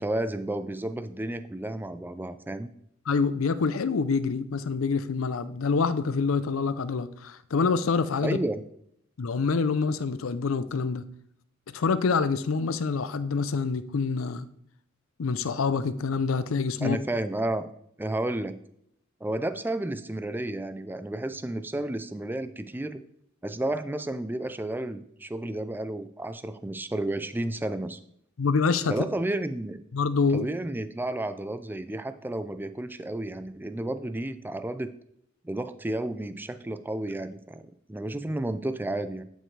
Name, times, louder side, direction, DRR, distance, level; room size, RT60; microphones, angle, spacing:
voice 1, 0.0-2.7 8.2-8.6 16.8-17.7 18.0-18.6 19.2-23.0 23.4-28.0 28.9-29.8 30.3-34.9 35.4-39.2, right 1 dB, 10° right, 11 dB, 0.4 m, -32 dB
voice 2, 3.1-8.4 9.2-11.0 11.7-14.5 15.2-17.0 28.4-28.9 29.9-30.5, left 4 dB, 80° left, 13 dB, 0.5 m, -26 dB
11.0 x 5.3 x 3.3 m, 0.70 s
head